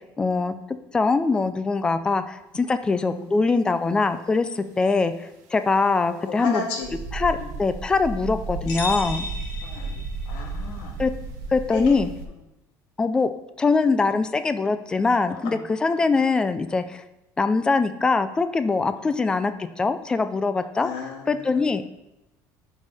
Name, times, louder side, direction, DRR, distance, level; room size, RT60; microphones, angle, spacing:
voice 1, 0.2-6.7 7.1-9.3 11.0-11.1 11.5-12.1 13.0-13.3 13.6-17.0 17.4-20.9 21.3-21.8, left 4 dB, 10° left, 11 dB, 0.3 m, -23 dB
voice 2, 3.0-3.3 6.3-6.9 7.3-7.5 9.6-9.9 10.3-10.9 11.7-12.0 15.3-15.6 20.8-21.6, left 5 dB, 70° left, 1 dB, 1.9 m, -33 dB
sound 1, 6.8-12.2, right 3 dB, 50° right, 1.1 m, -33 dB
sound 2, 8.7-10.5, left 2 dB, 55° left, 1.8 m, -34 dB
10.5 x 5.4 x 3.4 m, 0.91 s
cardioid pair, 180°, 7 cm